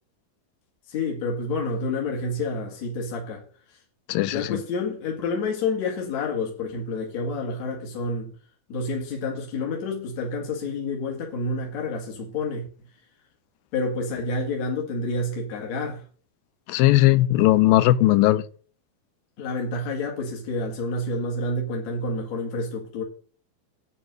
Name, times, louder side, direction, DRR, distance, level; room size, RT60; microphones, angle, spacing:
voice 1, 0.9-3.4 3.7-3.8 4.3-8.3 8.7-12.7 13.7-16.0 19.4-23.0, left 3 dB, 50° left, 3.1 m, -29 dB
voice 2, 4.1-4.6 16.7-18.4, left 16 dB, 80° left, 2.3 m, -18 dB
10.0 x 8.8 x 6.4 m
omnidirectional pair, 4.2 m